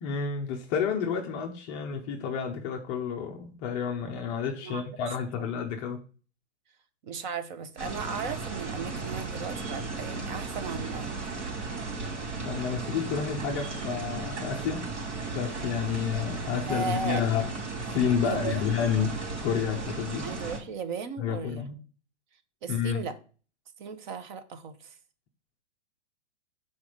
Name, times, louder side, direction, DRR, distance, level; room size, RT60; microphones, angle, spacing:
voice 1, 0.0-6.0 12.4-14.9 15.3-17.5 17.9-19.2 19.4-20.3 21.2-21.8 22.7-23.0, left 7 dB, 20° left, 0.4 m, -30 dB
voice 2, 4.6-5.5 7.0-11.2 16.7-17.2 18.2-18.7 20.2-21.7 22.6-23.2 23.8-24.9, right 5 dB, 40° right, 0.8 m, -36 dB
sound 1, 7.8-20.6, right 3 dB, 70° right, 3.0 m, -35 dB
6.0 x 4.2 x 4.9 m
hypercardioid pair, 145°, 36 cm